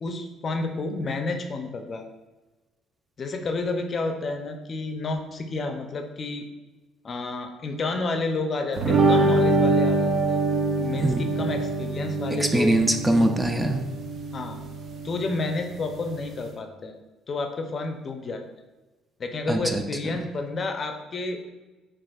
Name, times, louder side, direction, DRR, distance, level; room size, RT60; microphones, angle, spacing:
voice 1, 0.0-2.1 3.2-6.5 7.0-10.4 10.8-12.8 14.3-14.6 15.0-17.0 17.3-18.4 19.2-21.4, left 3 dB, 40° left, 5 dB, 0.5 m, -30 dB
sound 1, 8.8-16.5, right 2 dB, 55° right, 0.6 m, -25 dB
voice 2, 12.4-13.8 19.5-19.8, right 1 dB, 15° right, 4 dB, 0.4 m, -22 dB
6.1 x 2.4 x 2.4 m, 1.1 s
cardioid pair, 90°, 0 cm